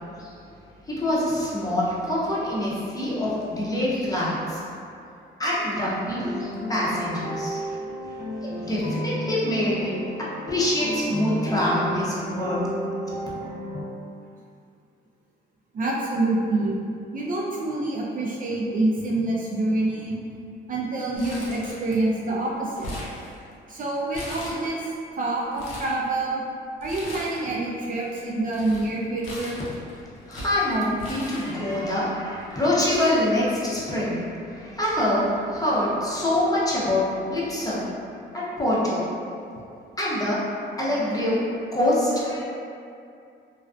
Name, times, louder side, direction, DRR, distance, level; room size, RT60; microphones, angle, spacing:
voice 1, 0.9-4.6 5.4-7.6 8.6-10.0 10.5-12.7 30.3-34.2 34.5-37.8 38.3-39.0 40.0-40.4 40.8-41.4 41.7-42.4, left 1 dB, 20° left, -8 dB, 0.6 m, -25 dB
sound 1, 6.1-13.8, equal, 50° left, 0.7 m, -32 dB
voice 2, 15.7-16.8 17.1-20.2 20.7-22.9 23.7-24.8 25.2-26.4 26.8-29.6, right 2 dB, 45° right, -4 dB, 0.4 m, -26 dB
Crumpling crinkling, 21.2-22.2 22.4-23.7 24.1-25.0 25.4-26.0 26.8-27.6 27.9-31.9 32.5-32.6 32.9-33.9 34.2-34.3 35.3-35.5, left 1 dB, 90° left, 0.6 m, -39 dB
2.4 x 2.1 x 2.4 m, 2.5 s
cardioid pair, 90°, 20 cm